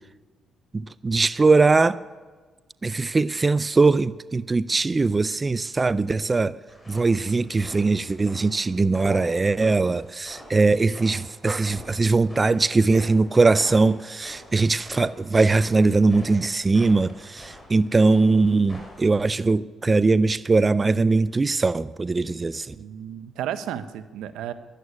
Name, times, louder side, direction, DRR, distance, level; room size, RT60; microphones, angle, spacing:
voice 1, 0.7-2.0 2.8-6.6 6.9-22.8, right 3 dB, 25° right, 0.4 m, -21 dB
sound 1, 6.7-19.1, left 1 dB, 20° left, 5.3 m, -44 dB
voice 2, 22.8-24.5, right 10 dB, 85° right, 0.9 m, -33 dB
13.0 x 11.5 x 9.7 m
cardioid pair, 90°, 0 cm